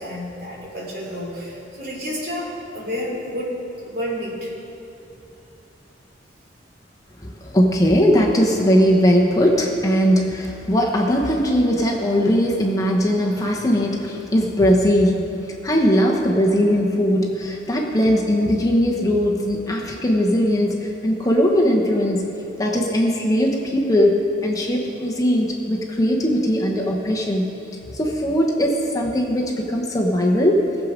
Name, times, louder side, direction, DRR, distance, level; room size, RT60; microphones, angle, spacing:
voice 1, 0.0-3.6 3.8-4.5 5.1-5.3, equal, 55° right, -4 dB, 3.2 m, -30 dB
voice 2, 7.2-22.3 22.6-27.5 27.9-30.6, equal, 20° left, -1 dB, 1.0 m, -19 dB
18.5 x 7.4 x 5.1 m, 2.8 s
head